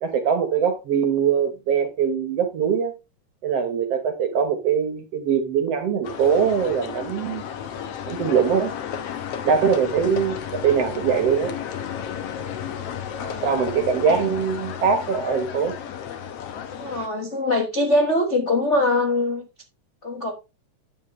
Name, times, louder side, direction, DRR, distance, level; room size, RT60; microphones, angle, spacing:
voice 1, 0.0-2.9 3.4-7.4 8.1-8.7 9.4-11.5 13.4-15.7, right 7 dB, 60° right, 2.0 m, -22 dB
sound 1, 6.0-17.1, left 8 dB, 65° left, 1.8 m, -33 dB
voice 2, 13.1-13.6 14.0-14.2 16.7-19.5 20.0-20.3, left 2 dB, 45° left, 0.9 m, -23 dB
9.4 x 7.4 x 3.1 m
omnidirectional pair, 3.5 m